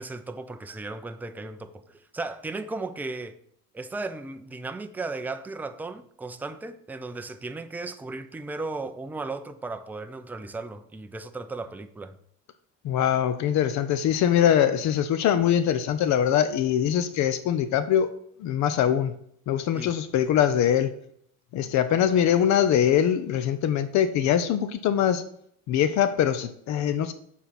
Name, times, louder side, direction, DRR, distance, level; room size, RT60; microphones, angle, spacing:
voice 1, 0.0-3.4 3.7-12.2 19.7-19.9, right 3 dB, 5° right, 0.4 m, -36 dB
voice 2, 12.8-18.1 18.4-19.1 19.5-20.9 21.5-25.2 25.7-27.1, left 9 dB, 65° left, 0.7 m, -23 dB
7.1 x 4.2 x 5.9 m
cardioid pair, 125°, 31 cm